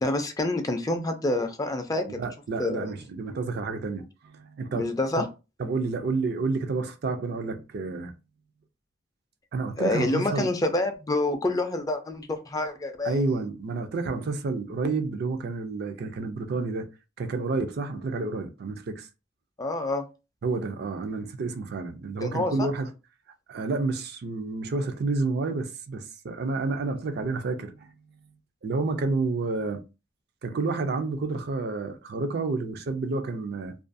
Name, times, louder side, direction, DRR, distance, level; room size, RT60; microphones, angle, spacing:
voice 1, 0.0-2.3 2.6-2.9 4.7-5.3 9.8-13.1 19.6-20.0 22.2-22.7, left 2 dB, 20° left, 0.4 m, -27 dB
voice 2, 2.1-5.0 5.6-8.1 9.5-10.5 13.0-16.9 17.2-19.1 20.4-22.9 23.5-27.9 28.6-29.8 30.4-33.7, right 3 dB, 60° right, 0.4 m, -30 dB
2.4 x 2.2 x 2.5 m
head